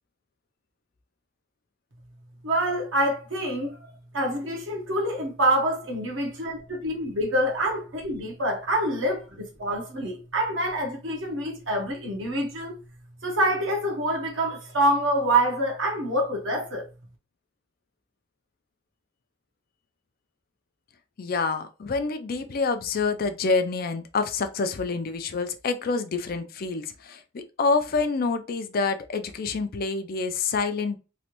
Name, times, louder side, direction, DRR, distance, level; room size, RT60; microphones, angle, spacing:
voice 1, 2.4-3.8 4.1-12.7 13.2-16.9, right 1 dB, 70° right, 0.9 m, -26 dB
voice 2, 21.2-31.0, left 4 dB, 50° left, 0.4 m, -27 dB
3.1 x 2.5 x 2.9 m
head